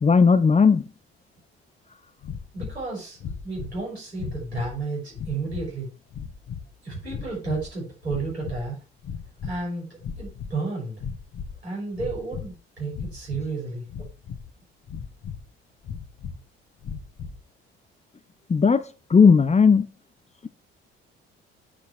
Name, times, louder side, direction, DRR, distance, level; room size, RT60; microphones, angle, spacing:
voice 1, 0.0-0.8 18.5-18.8 19.1-19.9, left 5 dB, 20° left, 0.9 m, -16 dB
sound 1, 2.2-2.8 3.2-3.8 4.1-4.8 5.1-5.7 6.1-6.6 7.1-7.7 8.0-8.7 9.0-9.7 10.0-10.6 11.0-11.6 11.9-12.5 12.9-13.5 13.9-14.5 14.9-15.4 15.8-16.4 16.8-17.4, left 6 dB, 45° left, 1.5 m, -36 dB
voice 2, 2.5-5.9 6.8-8.7 9.4-11.0 11.6-13.8, right 3 dB, 85° right, 6.0 m, -32 dB
9.0 x 5.2 x 6.1 m
figure-of-eight pair, 45°, 32 cm